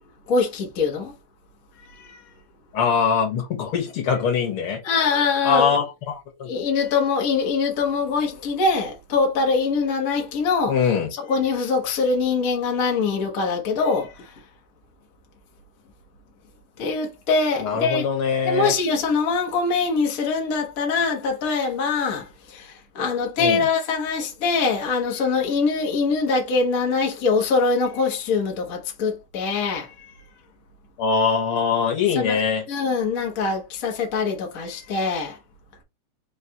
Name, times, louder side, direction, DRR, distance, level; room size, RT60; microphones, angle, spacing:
voice 1, 0.3-1.1 1.9-2.2 4.8-5.7 6.5-10.8 11.1-14.3 16.8-18.1 18.4-30.1 32.1-32.4 32.7-35.4, left 4 dB, 75° left, 0.7 m, -23 dB
voice 2, 2.7-4.8 5.4-6.5 10.7-11.1 17.6-18.7 23.4-23.6 31.0-32.6, left 6 dB, 55° left, 1.9 m, -22 dB
4.9 x 3.2 x 2.7 m
omnidirectional pair, 3.4 m